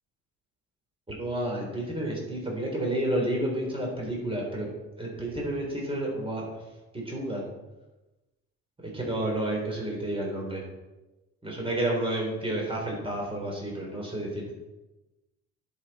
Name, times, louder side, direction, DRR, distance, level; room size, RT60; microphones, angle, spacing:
voice 1, 1.1-4.7 5.0-6.4 6.9-7.4 8.9-10.6 11.4-14.5, right 1 dB, 20° right, -2 dB, 3.9 m, -30 dB
11.5 x 7.3 x 4.3 m, 1.1 s
cardioid pair, 90°, 30 cm